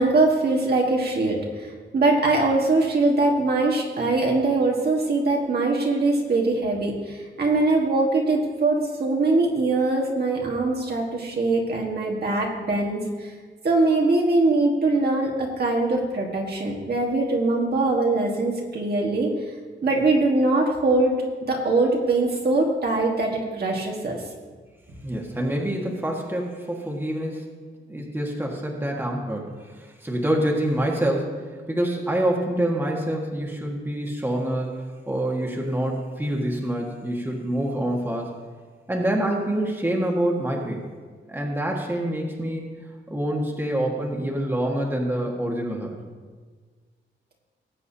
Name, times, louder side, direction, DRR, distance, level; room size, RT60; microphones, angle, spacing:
voice 1, 0.0-13.3 13.6-19.3 19.8-21.1 21.5-24.2, right 2 dB, 50° right, -1 dB, 1.7 m, -22 dB
voice 2, 25.0-27.4 27.9-29.5 30.0-31.4 31.7-34.8 35.1-38.3 38.9-40.9 41.3-42.6 43.1-45.9, right 1 dB, 10° right, -1 dB, 1.6 m, -26 dB
19.0 x 8.0 x 2.8 m, 1.5 s
wide cardioid pair, 130°, 20 cm